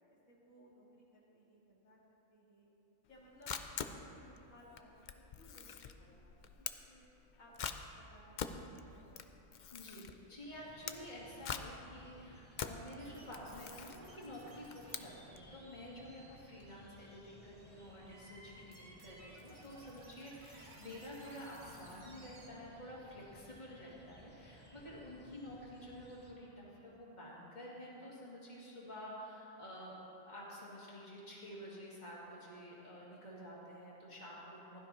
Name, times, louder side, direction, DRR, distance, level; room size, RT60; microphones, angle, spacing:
voice 1, 0.1-2.7 3.1-7.0 7.4-7.5 7.9-9.3, equal, 90° left, -6 dB, 2.6 m, -61 dB
Camera, 3.1-15.5, left 7 dB, 65° left, 0.4 m, -45 dB
voice 2, 9.7-30.0 30.3-34.8, equal, 35° left, -6 dB, 2.5 m, -50 dB
sound 1, 10.5-26.3, equal, 10° left, 1.1 m, -60 dB
sound 2, 13.0-22.5, right 1 dB, 65° right, 1.8 m, -60 dB
16.0 x 12.5 x 3.0 m, 2.8 s
omnidirectional pair, 1.4 m